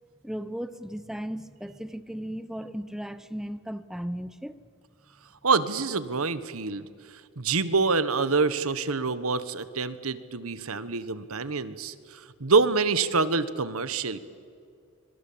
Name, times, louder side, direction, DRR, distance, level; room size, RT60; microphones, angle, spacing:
voice 1, 0.2-4.6, equal, ahead, 0.7 m, -36 dB
voice 2, 5.4-6.9 7.4-14.2, right 4 dB, 75° right, 1.3 m, -26 dB
25.5 x 23.0 x 8.7 m
head